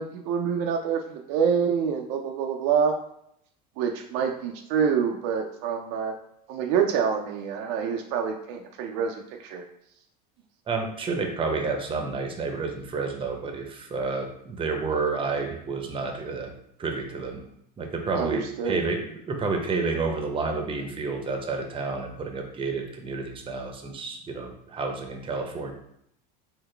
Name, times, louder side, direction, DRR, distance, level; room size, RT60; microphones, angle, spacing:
voice 1, 0.0-3.0 3.8-6.2 6.5-9.6 18.1-18.8, right 7 dB, 65° right, 3 dB, 0.4 m, -26 dB
voice 2, 10.7-16.5 16.8-17.4 17.8-25.7, right 4 dB, 25° right, 4 dB, 0.7 m, -30 dB
3.8 x 2.1 x 3.2 m, 0.73 s
hypercardioid pair, 90°, 21 cm